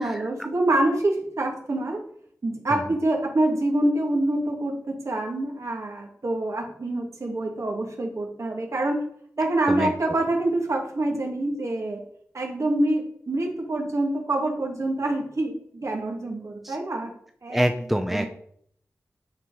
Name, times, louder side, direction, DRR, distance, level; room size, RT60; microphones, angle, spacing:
voice 1, 0.0-2.0 2.4-9.0 9.4-12.0 12.3-17.1 17.4-17.8 18.1-18.3, right 1 dB, 60° right, 0 dB, 2.1 m, -26 dB
voice 2, 17.5-18.3, equal, 5° right, 6 dB, 0.6 m, -24 dB
9.4 x 4.4 x 4.8 m, 0.65 s
wide cardioid pair, 70°, 6 cm